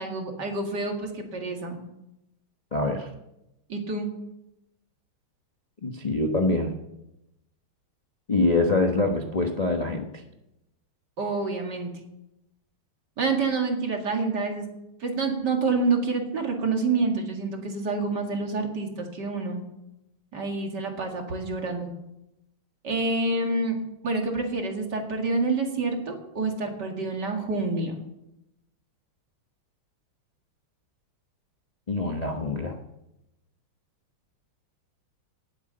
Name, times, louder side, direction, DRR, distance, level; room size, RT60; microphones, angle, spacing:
voice 1, 0.0-1.8 3.7-4.1 11.2-11.9 13.2-14.7 15.0-19.6 20.3-21.9 22.8-23.8 24.0-28.0, right 3 dB, 55° right, 3 dB, 2.7 m, -27 dB
voice 2, 2.7-3.1 5.8-6.8 8.3-10.2 31.9-32.8, left 2 dB, 25° left, 2 dB, 0.9 m, -25 dB
18.5 x 8.2 x 6.8 m, 0.88 s
omnidirectional pair, 2.3 m